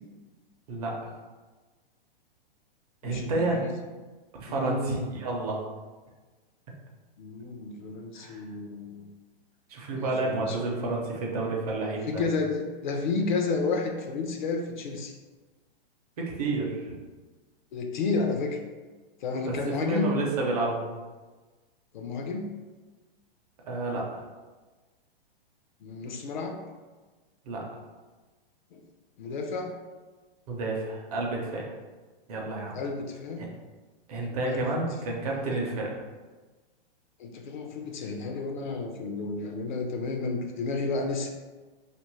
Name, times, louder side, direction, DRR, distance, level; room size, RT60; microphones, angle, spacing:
voice 1, 0.7-1.1 3.0-3.7 4.4-5.6 8.2-8.4 9.7-12.2 16.2-17.0 19.4-20.9 23.6-24.2 27.5-27.6 30.5-31.7 32.3-32.8 34.1-36.0, right 2 dB, 40° right, -2 dB, 0.7 m, -30 dB
voice 2, 3.0-3.7 4.5-5.1 7.2-9.1 10.0-10.6 12.1-15.2 17.7-18.6 19.2-20.1 21.9-22.5 25.8-26.6 28.7-28.8 29.2-29.7 32.7-33.4 34.5-34.7 35.4-35.6 37.2-41.3, left 3 dB, 50° left, 3 dB, 0.5 m, -31 dB
2.8 x 2.5 x 3.0 m, 1.3 s
hypercardioid pair, 160°, 30 cm